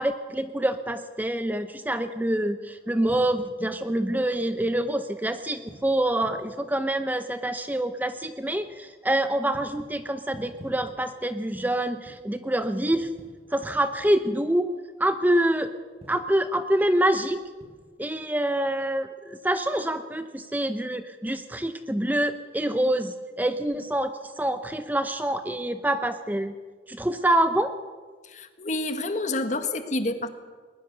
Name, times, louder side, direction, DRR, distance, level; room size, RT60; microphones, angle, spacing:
voice 1, 0.0-13.1 13.5-14.7 15.0-15.7 16.1-17.4 18.0-26.5 26.9-27.7, right 1 dB, 10° right, 9 dB, 0.6 m, -26 dB
sound 1, 2.6-17.9, equal, 35° right, 5.3 m, -52 dB
voice 2, 28.2-30.3, left 2 dB, 40° left, 8 dB, 1.6 m, -28 dB
20.5 x 20.5 x 6.9 m, 1.5 s
head